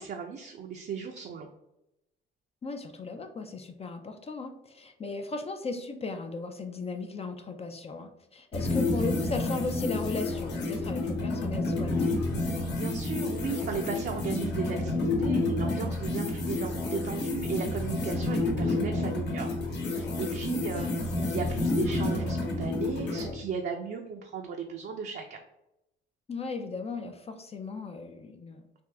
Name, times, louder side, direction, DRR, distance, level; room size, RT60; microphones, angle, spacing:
voice 1, 0.0-1.5 12.7-25.4, right 6 dB, 55° right, 2 dB, 0.5 m, -36 dB
voice 2, 2.6-12.1 20.5-20.9 26.3-28.7, left 3 dB, 30° left, 6 dB, 0.4 m, -36 dB
sound 1, 8.5-23.3, left 2 dB, 60° left, 1.1 m, -30 dB
3.5 x 2.5 x 3.2 m, 0.87 s
cardioid pair, 90°, 20 cm